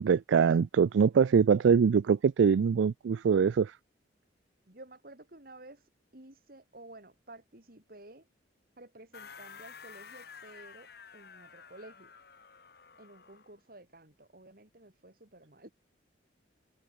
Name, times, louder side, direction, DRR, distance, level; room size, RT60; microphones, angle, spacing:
voice 1, 0.0-3.8, right 6 dB, 85° right, 0.4 m, -23 dB
voice 2, 4.7-8.3 8.8-12.1 13.0-15.7, right 2 dB, 50° right, 3.1 m, -52 dB
sound 1, 9.1-13.5, left 6 dB, 60° left, 1.6 m, -51 dB
head